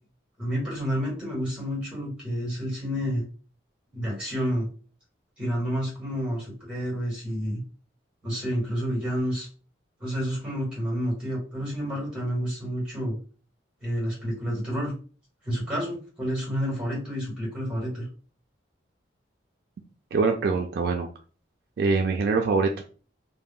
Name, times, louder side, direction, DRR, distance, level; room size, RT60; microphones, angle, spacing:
voice 1, 0.4-3.3 3.9-4.7 5.4-7.6 8.2-9.5 10.0-13.2 13.8-14.9 15.4-18.1, equal, 5° right, -5 dB, 1.2 m, -29 dB
voice 2, 20.1-21.1 21.8-22.8, right 4 dB, 55° right, 3 dB, 0.3 m, -24 dB
2.3 x 2.0 x 3.5 m, 0.38 s
head